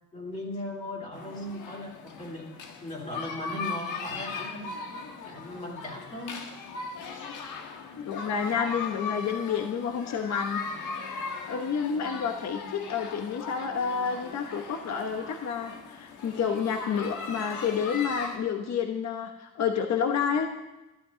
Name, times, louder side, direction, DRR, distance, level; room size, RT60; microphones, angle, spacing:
voice 1, 0.1-2.5 2.8-4.8 5.2-6.4, left 1 dB, 25° left, -2 dB, 3.1 m, -38 dB
sound 1, 1.1-18.4, left 5 dB, 85° left, 1.6 m, -38 dB
voice 2, 8.0-20.5, left 6 dB, 60° left, 5 dB, 1.2 m, -30 dB
12.5 x 12.0 x 5.2 m, 1.0 s
cardioid pair, 90°, 30 cm